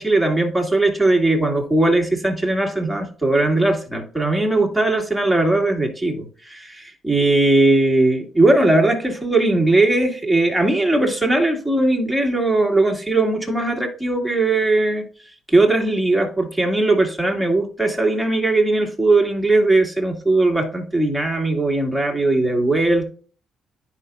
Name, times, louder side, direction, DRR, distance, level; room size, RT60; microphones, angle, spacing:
voice 1, 0.0-15.0 15.5-23.1, right 2 dB, ahead, 2.1 m, -19 dB
9.9 x 5.1 x 2.3 m
cardioid pair, 90°, 0 cm